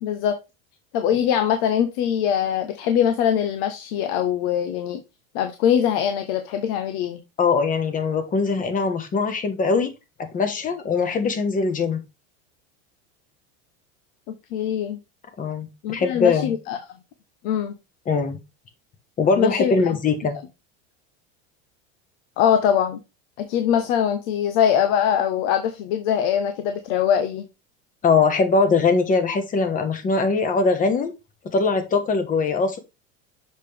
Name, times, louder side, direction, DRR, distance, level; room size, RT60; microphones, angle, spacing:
voice 1, 0.0-0.4 0.9-5.0 5.3-7.2 14.3-15.0 15.8-16.8 17.4-17.7 19.4-20.0 22.4-23.0 23.4-27.5, left 9 dB, 65° left, 0.9 m, -22 dB
voice 2, 7.4-9.9 10.2-12.0 15.4-16.5 18.1-18.4 19.2-20.4 28.0-31.1 31.5-32.8, left 4 dB, 25° left, 1.2 m, -21 dB
6.6 x 5.2 x 3.4 m
supercardioid pair, 135°, 32 cm